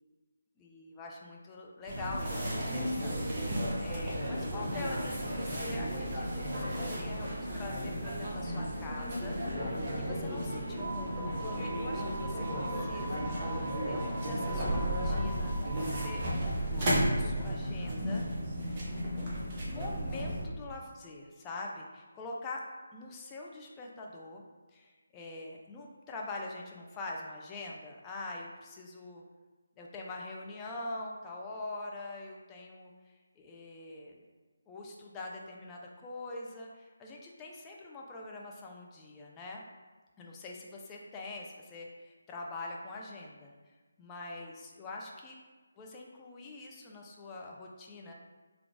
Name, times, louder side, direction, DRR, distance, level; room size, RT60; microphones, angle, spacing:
voice 1, 0.6-18.3 18.7-18.9 19.2-22.6 22.9-24.4 24.7-29.2 29.8-34.2 34.7-39.6 40.2-43.5 44.0-45.4 45.8-48.1, left 2 dB, 15° left, -2 dB, 0.4 m, -44 dB
sound 1, 1.9-20.4, equal, 30° right, 0.8 m, -33 dB
3.7 x 2.3 x 3.5 m, 1.3 s
figure-of-eight pair, 155°, 0 cm